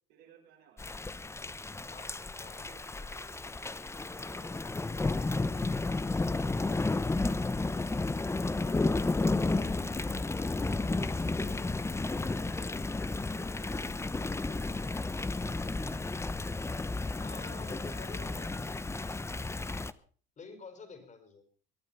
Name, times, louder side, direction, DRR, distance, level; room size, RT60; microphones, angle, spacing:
voice 1, 0.1-0.9 1.7-1.9 2.6-3.5 4.1-5.8 6.4-6.7 17.0-17.3, right 7 dB, 90° right, -2 dB, 5.6 m, -62 dB
Thunder / Rain, 0.8-19.9, left 3 dB, 15° left, 0.8 m, -32 dB
voice 2, 1.9-2.7 17.2-18.5 20.4-21.4, left 4 dB, 40° left, 8 dB, 5.2 m, -49 dB
23.0 x 9.6 x 5.8 m, 0.43 s
cardioid pair, 95°, 20 cm